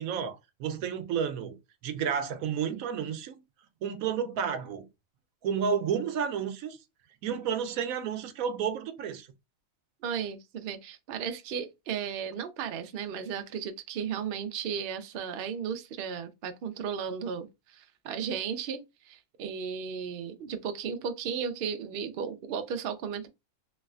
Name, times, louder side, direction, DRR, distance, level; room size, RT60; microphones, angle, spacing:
voice 1, 0.0-1.6 1.8-3.4 3.8-4.9 5.4-6.8 7.2-9.3, right 7 dB, 80° right, 1.0 m, -31 dB
voice 2, 10.0-23.3, right 7 dB, 65° right, 0.6 m, -35 dB
3.1 x 3.1 x 2.4 m
omnidirectional pair, 1.4 m